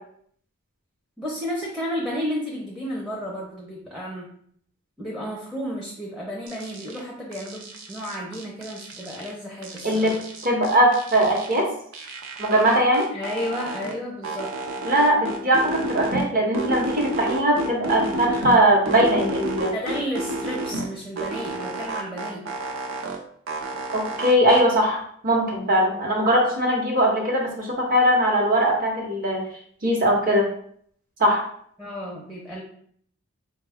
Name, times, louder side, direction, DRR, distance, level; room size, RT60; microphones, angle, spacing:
voice 1, 1.2-4.3 5.0-10.2 13.1-14.5 19.7-22.4 31.8-32.6, equal, ahead, -3 dB, 0.5 m, -32 dB
sound 1, 6.5-7.0 7.3-9.3 9.6-11.6 11.9-13.9 14.2-16.3 16.5-18.6 18.9-20.9 21.2-23.2 23.5-24.6, right 2 dB, 70° right, 0.6 m, -31 dB
voice 2, 9.8-10.2 10.4-11.7 12.4-13.1 14.9-19.7 23.9-29.4 29.8-30.5 31.2-31.4, right 1 dB, 45° right, 0 dB, 0.9 m, -20 dB
4.3 x 2.2 x 3.4 m, 0.63 s
head